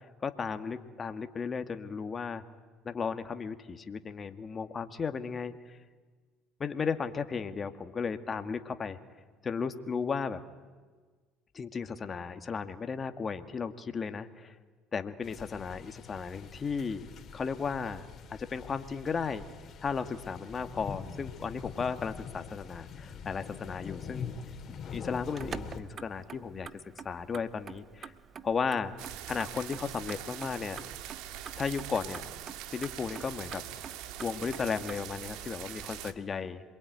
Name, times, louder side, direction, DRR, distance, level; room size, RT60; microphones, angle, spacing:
voice 1, 0.2-2.4 2.8-5.8 6.6-9.0 9.4-10.4 11.5-14.6 14.9-17.1 17.3-18.1 18.4-19.4 19.8-24.3 24.9-27.8 28.4-28.9 29.3-30.8 31.6-32.3 32.7-36.6, left 5 dB, 35° left, 8 dB, 1.9 m, -35 dB
sound 1, 15.2-25.8, left 6 dB, 50° left, 2.9 m, -44 dB
Motor vehicle (road), 25.2-35.0, right 6 dB, 40° right, 1.3 m, -47 dB
sound 2, 29.0-36.1, right 11 dB, 75° right, 1.7 m, -43 dB
27.0 x 22.5 x 9.5 m, 1.4 s
supercardioid pair, 75°, 0 cm